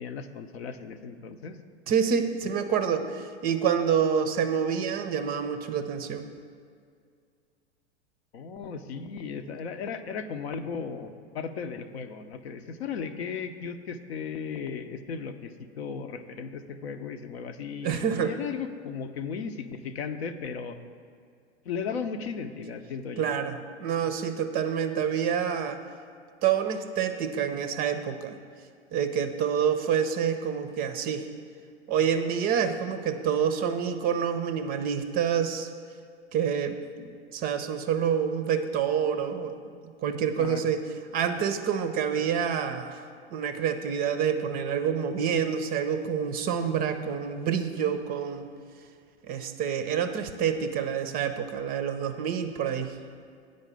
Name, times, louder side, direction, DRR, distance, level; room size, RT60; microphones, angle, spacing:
voice 1, 0.0-1.6 8.3-20.8 21.6-23.3 40.4-40.6, left 6 dB, 65° left, 9 dB, 0.7 m, -36 dB
voice 2, 1.9-6.3 17.8-18.3 23.2-25.8 26.4-28.4 28.9-31.3 31.9-35.7 36.3-39.5 40.0-40.8 41.1-48.5 49.3-52.9, right 7 dB, 25° right, 9 dB, 0.5 m, -27 dB
8.8 x 5.3 x 6.8 m, 2.2 s
figure-of-eight pair, 95°, 34 cm